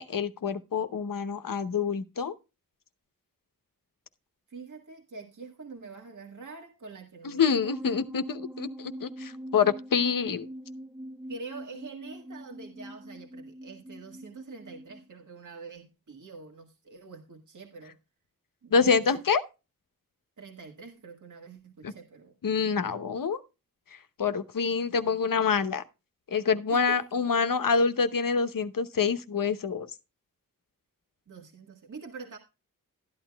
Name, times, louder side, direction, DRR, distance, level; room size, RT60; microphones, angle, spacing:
voice 1, 0.0-2.3 7.2-10.5 18.7-19.4 21.8-21.9 22.4-23.4 23.9-25.8 26.3-29.9, left 5 dB, 70° left, 1.0 m, -26 dB
voice 2, 4.5-7.4 11.3-18.0 18.6-19.2 20.4-22.4 26.7-27.0 31.3-32.4, right 4 dB, 60° right, 1.6 m, -45 dB
sound 1, 7.6-15.0, equal, 5° right, 0.6 m, -43 dB
13.0 x 11.0 x 2.3 m
wide cardioid pair, 105°, 34 cm